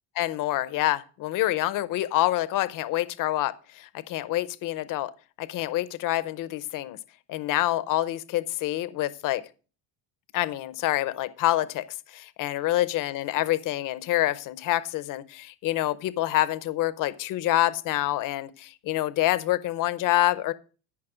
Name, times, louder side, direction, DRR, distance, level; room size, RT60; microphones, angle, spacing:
voice 1, 0.2-5.1 5.4-7.0 7.3-9.4 10.3-20.5, left 15 dB, 45° left, 16 dB, 0.7 m, -27 dB
13.5 x 5.7 x 4.9 m, 0.36 s
cardioid pair, 160°, 46 cm